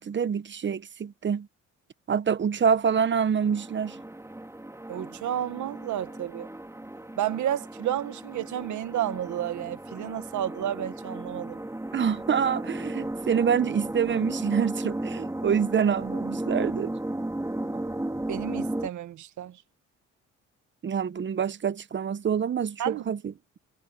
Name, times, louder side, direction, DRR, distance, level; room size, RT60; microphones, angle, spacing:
voice 1, 0.0-1.5 2.1-4.0 11.9-16.9 20.8-23.2, right 7 dB, 40° right, 0.9 m, -26 dB
sound 1, 3.3-18.9, right 1 dB, 10° right, 3.9 m, -35 dB
voice 2, 4.9-6.5 7.2-11.6 18.3-19.6 22.8-23.0, right 11 dB, 75° right, 1.6 m, -31 dB
cardioid pair, 90°, 30 cm